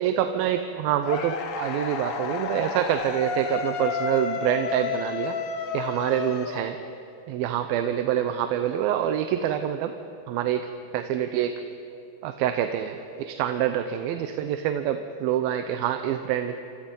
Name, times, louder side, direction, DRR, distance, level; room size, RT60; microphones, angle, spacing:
voice 1, 0.0-5.4 5.7-6.8 7.3-9.9 10.3-11.7 12.2-16.6, right 10 dB, 85° right, 8 dB, 2.7 m, -26 dB
sound 1, 1.0-7.1, left 6 dB, 60° left, 1.5 m, -31 dB
28.5 x 28.0 x 5.4 m, 2.7 s
omnidirectional pair, 4.2 m